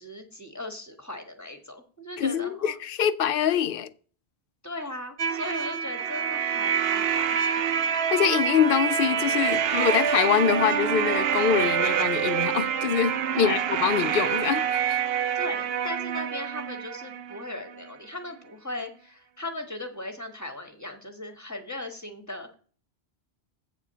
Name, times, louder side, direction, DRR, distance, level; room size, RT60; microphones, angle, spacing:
voice 1, 0.0-2.7 4.6-7.8 13.3-13.7 15.3-22.5, left 1 dB, 15° left, 1.5 m, -38 dB
voice 2, 2.2-3.9 7.9-15.0, left 8 dB, 65° left, 0.7 m, -25 dB
sound 1, 5.2-17.9, right 8 dB, 70° right, 0.9 m, -26 dB
8.2 x 4.8 x 6.7 m
omnidirectional pair, 1.1 m